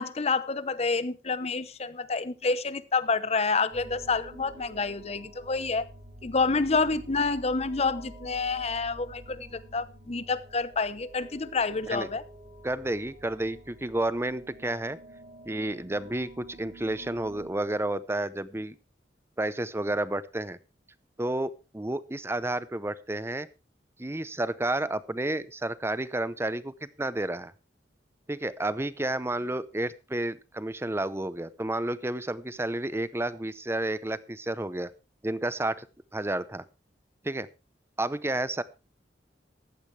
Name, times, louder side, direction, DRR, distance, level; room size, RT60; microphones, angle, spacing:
voice 1, 0.0-5.9 6.2-12.2, left 4 dB, 40° left, 0.8 m, -28 dB
sound 1, 3.7-17.5, right 1 dB, 70° right, 4.9 m, -49 dB
voice 2, 12.6-15.0 15.4-18.7 19.4-20.6 21.2-23.5 24.0-27.5 28.3-34.9 35.2-35.9 36.1-36.6 37.2-37.5 38.0-38.6, right 1 dB, 15° right, 0.7 m, -31 dB
15.0 x 11.5 x 3.2 m
head